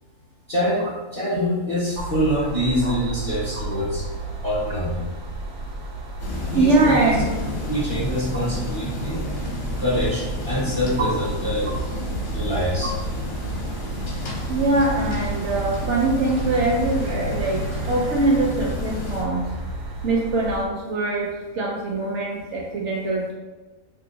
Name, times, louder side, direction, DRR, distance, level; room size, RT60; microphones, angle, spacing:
voice 1, 0.5-4.0 4.4-5.1 6.5-7.1 7.7-9.2 9.8-11.8 12.3-12.9, equal, 45° left, -7 dB, 0.4 m, -25 dB
sound 1, 1.9-20.6, right 2 dB, 85° right, 1.2 m, -32 dB
sound 2, 6.2-19.2, left 1 dB, 60° left, 1.0 m, -31 dB
voice 2, 6.5-7.3 11.0-11.1 14.5-19.5 20.0-23.3, right 2 dB, 65° right, -1 dB, 0.7 m, -22 dB
2.8 x 2.5 x 3.8 m, 1.2 s
omnidirectional pair, 1.5 m